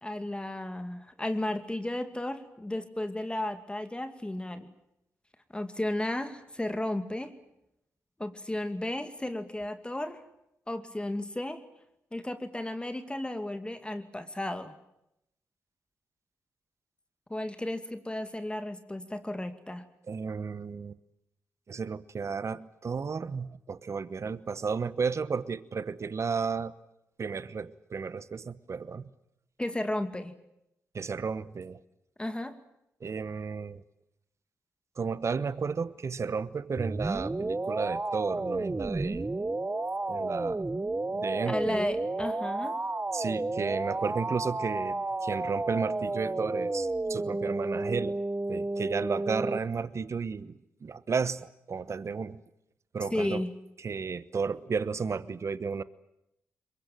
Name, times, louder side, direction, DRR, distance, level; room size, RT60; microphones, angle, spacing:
voice 1, 0.0-4.7 5.5-7.3 8.2-10.2 10.7-11.6 12.1-14.7 17.3-19.8 29.6-30.4 32.2-32.6 41.5-42.7 53.1-53.5, left 1 dB, 15° left, 9 dB, 2.4 m, -34 dB
voice 2, 20.1-21.0 21.7-26.7 27.2-29.1 30.9-31.8 33.0-33.8 35.0-39.5 40.1-40.7 41.1-41.9 43.1-48.2 48.5-52.4 52.9-53.4 53.8-55.8, right 5 dB, 50° right, 17 dB, 1.1 m, -33 dB
sound 1, 36.8-49.6, right 2 dB, 25° right, 1.1 m, -32 dB
23.0 x 21.0 x 9.1 m, 0.82 s
hypercardioid pair, 40°, 6 cm